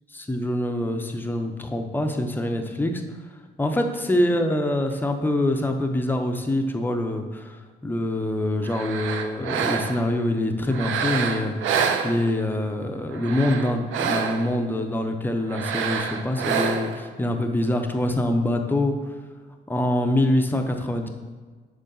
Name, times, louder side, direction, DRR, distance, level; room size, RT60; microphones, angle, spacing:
voice 1, 0.1-3.0 3.6-19.0 19.7-21.1, left 1 dB, 10° left, 4 dB, 0.6 m, -25 dB
sound 1, 8.6-10.1 10.7-12.6 13.1-14.6 15.5-17.1, right 6 dB, 80° right, 0.5 m, -27 dB
6.3 x 4.1 x 3.8 m, 1.4 s
cardioid pair, 90°, 20 cm